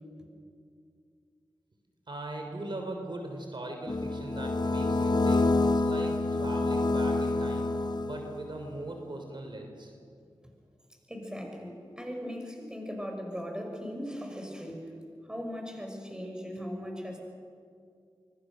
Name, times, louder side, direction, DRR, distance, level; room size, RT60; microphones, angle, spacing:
voice 1, 2.1-7.7 8.0-9.9, right 1 dB, 55° right, 3 dB, 3.6 m, -40 dB
sound 1, 3.9-8.5, left 2 dB, 50° left, 1.1 m, -27 dB
voice 2, 11.1-15.0 15.3-17.2, equal, 10° right, 2 dB, 6.0 m, -38 dB
24.5 x 24.0 x 6.4 m, 2.3 s
cardioid pair, 50°, 9 cm